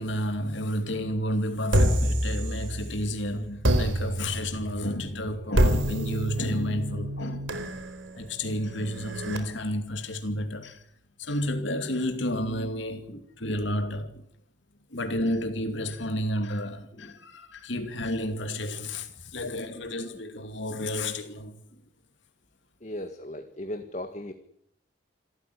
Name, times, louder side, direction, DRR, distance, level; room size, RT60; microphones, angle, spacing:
voice 1, 0.0-7.5 8.2-10.8 11.2-14.1 14.9-21.6, equal, 75° left, 2.6 m, -31 dB
sound 1, 1.7-3.1 3.6-9.4, equal, 85° right, 4.4 m, -27 dB
voice 2, 13.1-13.6 15.2-15.3 16.9-17.2 21.7-21.8 22.8-24.3, left 1 dB, 35° left, 1.8 m, -38 dB
27.5 x 14.5 x 10.0 m
head